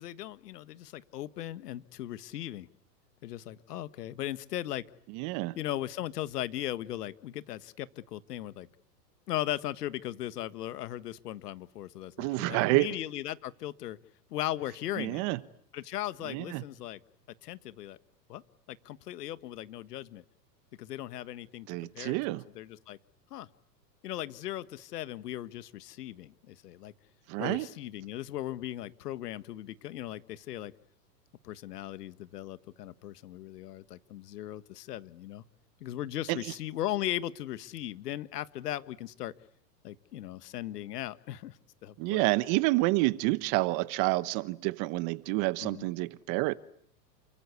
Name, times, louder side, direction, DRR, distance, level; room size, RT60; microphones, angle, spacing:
voice 1, 0.0-2.7 3.2-4.8 5.5-8.7 9.3-14.0 14.3-15.2 15.7-17.0 17.4-18.0 18.3-18.4 18.7-20.2 20.8-21.7 21.9-23.0 23.3-23.5 24.0-26.9 27.4-30.7 31.4-35.4 35.8-39.3 39.8-42.2 45.6-45.9, left 13 dB, 65° left, 1.6 m, -38 dB
voice 2, 5.1-5.6 12.2-12.9 15.0-15.4 16.3-16.6 21.7-22.4 27.3-27.7 36.3-36.4 42.0-46.6, right 22 dB, 40° right, 1.2 m, -28 dB
29.0 x 24.0 x 8.3 m
hypercardioid pair, 120°, 50 cm